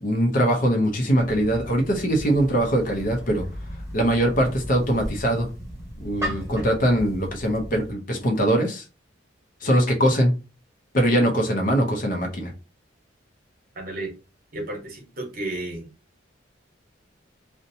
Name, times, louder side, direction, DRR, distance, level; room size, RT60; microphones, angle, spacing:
voice 1, 0.0-3.4 3.9-5.5 6.0-8.8 9.6-10.3 10.9-12.5, equal, 45° left, 2 dB, 0.6 m, -22 dB
sound 1, 1.2-7.9, equal, 15° right, 1.0 m, -36 dB
voice 2, 13.7-14.1 14.5-15.9, right 2 dB, 45° right, 0 dB, 1.0 m, -33 dB
2.7 x 2.1 x 2.6 m, 0.31 s
head